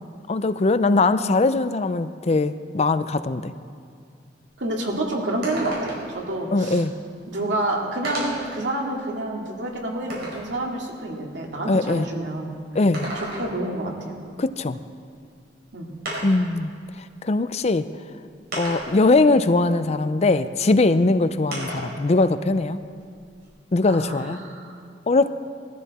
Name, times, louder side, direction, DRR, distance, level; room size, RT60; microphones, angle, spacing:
voice 1, 0.3-3.5 6.5-6.9 11.7-12.1 12.7-13.1 14.4-14.8 16.2-16.7 17.2-17.9 18.5-22.8 23.7-24.4 25.1-25.3, left 3 dB, 35° left, 12 dB, 0.5 m, -21 dB
sound 1, 4.5-4.6 4.9-5.0 5.4-6.2 7.2-7.3 8.0-8.5 9.1-10.5 12.7-13.7 15.2-15.3 16.0-16.5 17.5-17.6 18.5-19.1 21.5-22.0 22.3-23.5, right 1 dB, 60° right, 5.1 m, -33 dB
voice 2, 4.6-6.8 7.3-12.5 13.1-14.1 15.7-15.9 23.9-24.8, right 1 dB, 85° right, -1 dB, 2.4 m, -28 dB
20.5 x 13.5 x 4.2 m, 2.2 s
head